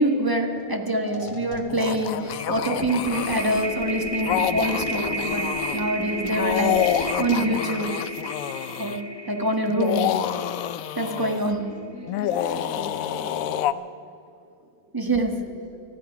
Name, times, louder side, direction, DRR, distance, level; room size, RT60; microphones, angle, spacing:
voice 1, 0.0-5.4 5.7-7.9 8.8-9.0 9.3-10.0 10.9-11.6 14.9-15.3, right 1 dB, 15° right, 3 dB, 1.3 m, -25 dB
sound 1, 0.6-0.7 1.0-11.3, equal, 25° left, 1.3 m, -33 dB
sound 2, 1.7-3.7 4.2-5.8 6.3-9.0 9.7-11.5 12.1-13.7, left 11 dB, 70° left, 0.9 m, -28 dB
voice 2, 11.5-13.8 14.8-14.9 15.4-15.6, right 1 dB, 40° right, -8 dB, 4.9 m, -41 dB
19.0 x 13.0 x 5.8 m, 2.6 s
omnidirectional pair, 1.6 m